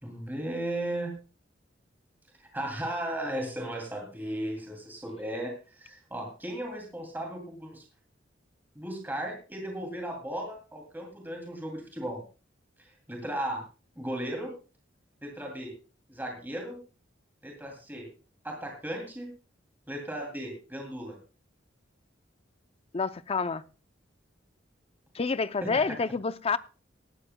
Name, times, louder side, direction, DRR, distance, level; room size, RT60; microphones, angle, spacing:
voice 1, 0.0-1.1 2.5-7.8 8.7-12.2 12.8-13.6 14.0-14.5 15.2-15.7 16.1-16.8 17.4-18.1 18.4-19.3 19.9-21.2 25.6-25.7, right 1 dB, 10° right, 2.6 m, -36 dB
voice 2, 22.9-23.6 25.1-26.6, left 4 dB, 30° left, 0.5 m, -28 dB
18.5 x 13.5 x 2.2 m
head